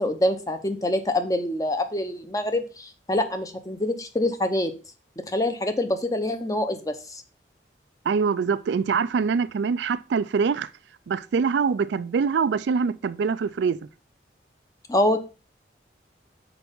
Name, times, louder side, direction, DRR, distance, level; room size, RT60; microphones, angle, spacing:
voice 1, 0.0-4.7 5.3-7.2 14.9-15.2, left 1 dB, 20° left, 0.8 m, -25 dB
voice 2, 8.1-10.7 11.1-13.8, right 5 dB, 75° right, 0.4 m, -24 dB
6.1 x 4.6 x 5.3 m
head